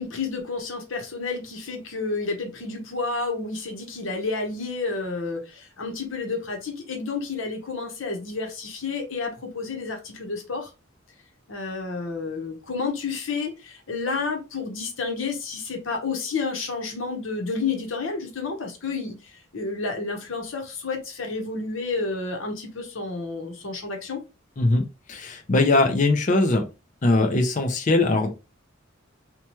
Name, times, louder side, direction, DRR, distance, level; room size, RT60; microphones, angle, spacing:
voice 1, 0.0-10.7 11.5-24.2, left 4 dB, 80° left, 0.8 m, -30 dB
voice 2, 25.1-26.6 27.0-28.3, left 2 dB, 40° left, 0.5 m, -20 dB
2.9 x 2.2 x 2.9 m
head